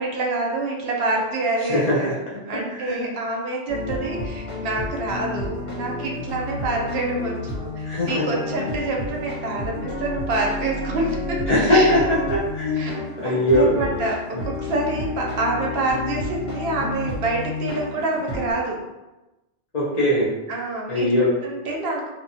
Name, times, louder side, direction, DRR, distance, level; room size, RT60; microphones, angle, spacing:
voice 1, 0.0-2.1 2.5-12.0 12.8-12.9 13.2-18.8 20.5-21.1 21.4-22.1, right 2 dB, 60° right, -1 dB, 0.7 m, -27 dB
voice 2, 1.7-2.1 2.7-3.1 7.8-8.2 11.5-12.9 13.2-13.7 19.7-20.3 20.9-21.3, left 1 dB, 40° left, -8 dB, 0.6 m, -20 dB
sound 1, 3.7-18.5, left 2 dB, 80° left, 1.3 m, -30 dB
2.8 x 2.4 x 2.6 m, 1.0 s
omnidirectional pair, 1.3 m